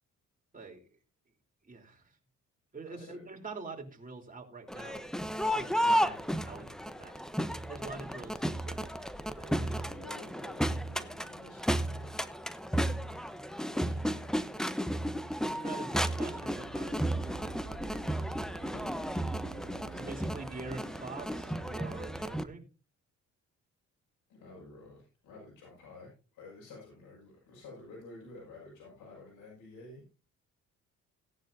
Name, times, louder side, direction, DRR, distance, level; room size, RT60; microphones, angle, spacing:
voice 1, 0.5-0.8 1.6-2.1 2.7-5.0 5.5-7.2 7.7-8.9 9.4-10.0 12.6-12.8 15.4-16.9 19.9-22.6, right 4 dB, 25° right, 1 dB, 3.8 m, -45 dB
voice 2, 2.9-3.2 4.8-5.0 5.5-5.7 9.9-12.1 13.7-14.9 17.9-19.2 24.3-30.0, left 2 dB, 85° left, -3 dB, 6.4 m, -52 dB
Crowd, 4.7-22.4, equal, ahead, 0.9 m, -33 dB
sound 1, 16.3-22.2, right 6 dB, 75° right, 2.4 m, -49 dB
18.0 x 10.5 x 2.7 m, 0.32 s
cardioid pair, 90°, 30 cm